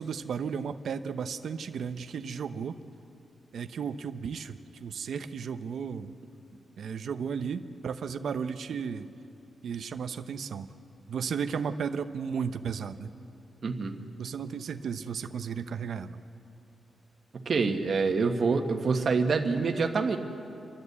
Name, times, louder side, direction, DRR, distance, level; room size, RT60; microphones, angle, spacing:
voice 1, 0.0-2.8 3.5-6.1 6.8-9.1 9.6-10.7 11.1-13.1 14.2-16.2, right 6 dB, 65° right, 9 dB, 0.7 m, -34 dB
voice 2, 13.6-14.0 17.4-20.2, right 4 dB, 45° right, 4 dB, 1.4 m, -26 dB
29.5 x 11.0 x 8.1 m, 2.6 s
wide cardioid pair, 150°, 0 cm